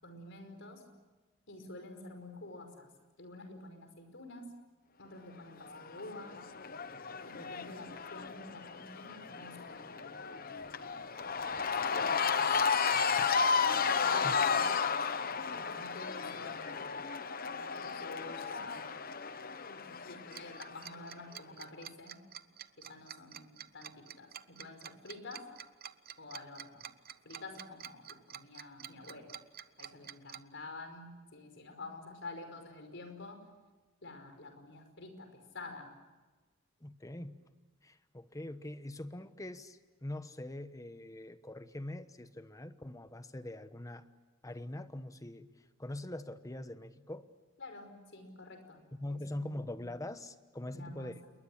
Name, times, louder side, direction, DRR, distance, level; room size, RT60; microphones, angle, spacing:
voice 1, 0.0-0.8 1.5-2.9 3.2-4.6 5.0-6.4 7.2-10.6 11.4-13.4 13.9-17.1 17.4-18.9 19.7-22.2 22.8-25.5 26.2-26.9 27.2-29.3 29.8-33.5 34.0-35.9 47.6-48.8 49.1-49.6 50.7-51.3, left 2 dB, 65° left, 6 dB, 5.4 m, -49 dB
Cheering / Crowd, 5.7-20.9, left 5 dB, 45° left, 1.1 m, -33 dB
Tick-tock, 20.3-30.4, right 10 dB, 50° right, 0.9 m, -48 dB
voice 2, 36.8-37.3 37.8-44.1 44.4-45.5 45.8-47.3 49.0-51.1, left 1 dB, 15° left, 11 dB, 1.2 m, -43 dB
28.5 x 22.0 x 8.8 m, 1.2 s
head